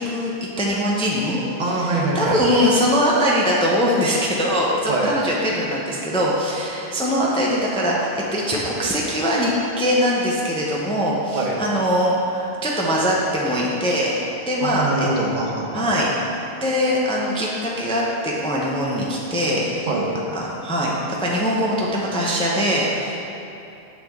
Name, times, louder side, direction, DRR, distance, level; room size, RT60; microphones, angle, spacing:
voice 1, 0.0-1.4 1.7-14.2 14.5-15.1 15.7-16.1 16.6-19.9 20.3-23.1, equal, 5° left, -4 dB, 0.6 m, -22 dB
voice 2, 1.6-2.5 4.8-5.1 11.3-11.6 14.6-16.1 19.9-20.1, right 2 dB, 50° right, -1 dB, 1.0 m, -24 dB
6.7 x 6.2 x 3.6 m, 2.8 s
omnidirectional pair, 1.1 m